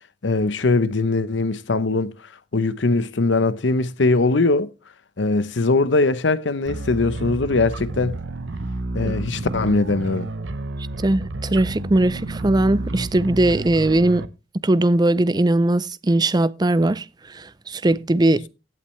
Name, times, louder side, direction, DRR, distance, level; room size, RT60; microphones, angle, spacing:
voice 1, 0.2-2.1 2.5-4.7 5.2-8.2 8.9-10.3, left 3 dB, 85° left, 0.8 m, -21 dB
sound 1, 6.6-14.3, right 2 dB, 90° right, 0.9 m, -30 dB
voice 2, 11.0-14.3 14.6-17.0 17.3-18.5, right 1 dB, 20° right, 0.5 m, -19 dB
15.5 x 8.6 x 3.2 m
head